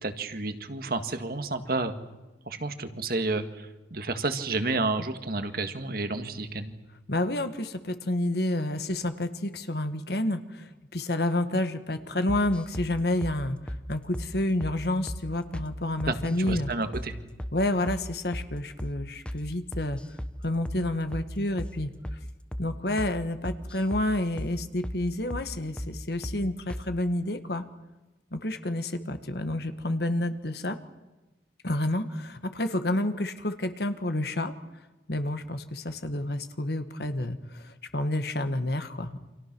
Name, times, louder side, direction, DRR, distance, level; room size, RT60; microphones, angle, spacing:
voice 1, 0.0-2.0 2.5-6.8 16.1-17.1, right 3 dB, 50° right, 8 dB, 1.8 m, -30 dB
voice 2, 7.1-16.7 17.5-20.0 20.4-22.2 22.6-27.6 28.3-30.8 31.6-34.5 35.1-39.2, left 1 dB, 60° left, 9 dB, 1.6 m, -29 dB
sound 1, 12.3-12.9 13.2-13.4 13.7-13.8 14.1-14.3 14.6-14.8 15.1-15.2 15.5-15.7 16.0-16.6 16.9-17.1 17.4-17.6 17.9-18.0 18.3-18.5 18.8-19.0 19.3-19.4 19.7-20.4 20.7-20.8 21.1-21.3 21.6-21.8 22.0-22.2 22.5-22.7 23.0-23.1 23.4-24.1 24.4-24.5 24.8-25.0 25.3-25.5 25.8-25.9 26.2-26.4 26.7-26.9, equal, 5° left, 0.9 m, -35 dB
29.0 x 27.0 x 6.2 m, 1.1 s
head